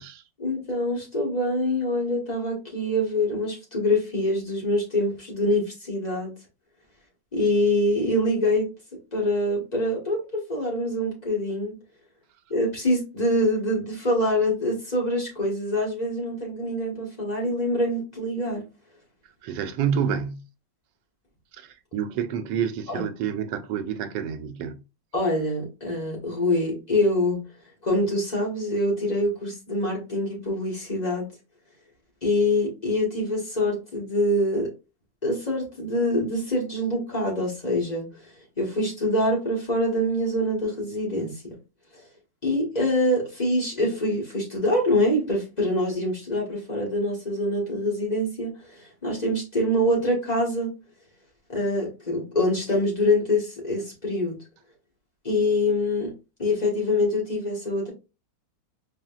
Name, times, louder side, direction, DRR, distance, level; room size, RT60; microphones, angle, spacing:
voice 1, 0.4-6.3 7.3-8.7 9.1-11.7 12.5-18.6 22.9-23.0 25.1-27.4 27.8-31.3 32.2-34.7 35.2-38.1 38.6-41.4 41.9-42.0 42.4-50.8 51.5-54.4 55.2-56.1 56.4-57.9, left 1 dB, 25° left, 1.3 m, -25 dB
voice 2, 19.4-20.4 21.5-24.8, right 8 dB, 85° right, 1.2 m, -28 dB
4.9 x 2.9 x 2.3 m
omnidirectional pair, 1.8 m